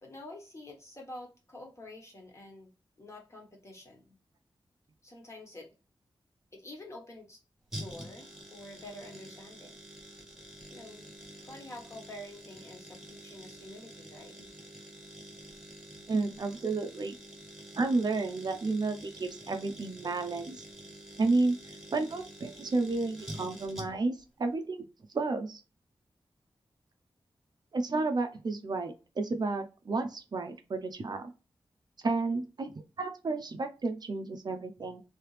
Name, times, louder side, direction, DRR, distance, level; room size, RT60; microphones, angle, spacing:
voice 1, 0.0-2.7 3.0-4.2 5.0-5.7 6.5-7.4 7.8-9.8 10.7-14.5, left 1 dB, 30° left, 0 dB, 1.2 m, -48 dB
sound 1, 7.7-24.2 24.5-24.6, right 1 dB, 5° right, 1.2 m, -47 dB
voice 2, 16.1-17.2 17.7-20.6 21.2-21.6 21.9-24.9 25.1-25.6 27.7-31.3 32.0-32.7 33.0-35.0, right 3 dB, 50° right, 6 dB, 0.5 m, -31 dB
3.2 x 2.8 x 3.2 m, 0.31 s
wide cardioid pair, 95°, 9 cm